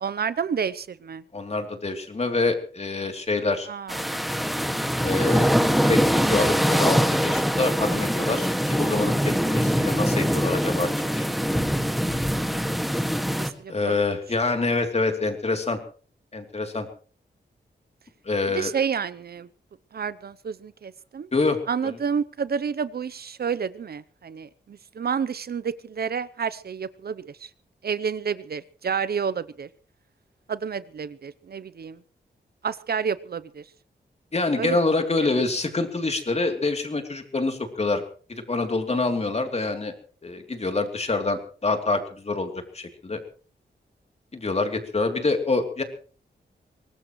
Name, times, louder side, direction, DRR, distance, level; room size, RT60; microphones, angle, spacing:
voice 1, 0.0-1.2 3.7-4.2 12.3-12.6 13.3-14.0 18.5-19.5 19.9-21.3 21.7-27.5 27.8-29.7 30.5-32.0 32.6-33.7 34.6-34.8 35.2-35.3, right 6 dB, 60° right, 16 dB, 0.7 m, -30 dB
voice 2, 1.3-3.7 5.0-5.6 5.8-11.6 13.7-15.8 16.3-16.9 18.2-18.7 21.3-21.6 21.8-21.9 34.3-38.0 38.3-39.9 40.2-43.2 44.3-45.8, left 3 dB, 35° left, 5 dB, 3.0 m, -26 dB
sound 1, 3.9-13.5, equal, ahead, 1.8 m, -23 dB
23.0 x 19.0 x 3.1 m, 0.40 s
wide cardioid pair, 100°, 18 cm